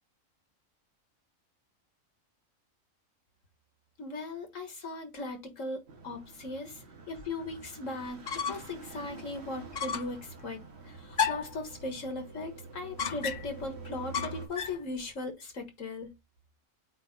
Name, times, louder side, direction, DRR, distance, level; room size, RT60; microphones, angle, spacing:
voice 1, 4.0-16.1, left 2 dB, 70° left, 1.8 m, -38 dB
sound 1, 5.9-14.5, right 4 dB, 55° right, 1.7 m, -47 dB
sound 2, 8.0-8.8 9.1-9.2 9.7-10.2 11.1-11.6 13.0-13.6 14.1-14.8, left 7 dB, 50° left, 0.5 m, -33 dB
8.3 x 2.8 x 4.1 m
omnidirectional pair, 1.4 m